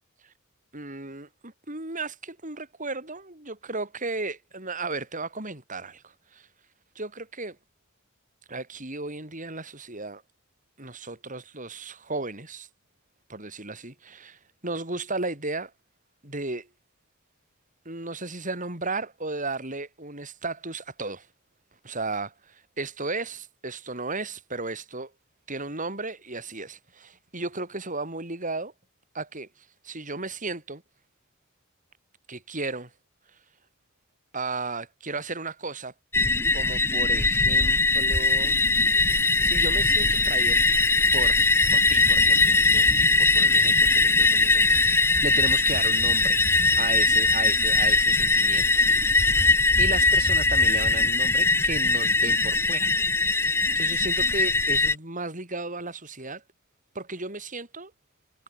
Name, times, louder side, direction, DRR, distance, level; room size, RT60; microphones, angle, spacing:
voice 1, 0.7-6.5 7.0-7.6 8.5-10.2 10.8-12.7 13.3-15.7 16.2-16.7 17.9-21.3 21.8-25.1 25.5-28.7 29.1-29.5 29.8-30.8 32.3-32.9 34.3-35.9 36.5-40.6 41.1-41.4 41.7-46.4 46.8-49.4 49.8-52.9 53.4-56.4 57.0-57.9, right 3 dB, 35° right, 6.9 m, -35 dB
sound 1, 36.1-55.0, left 3 dB, 10° left, 0.6 m, -21 dB
head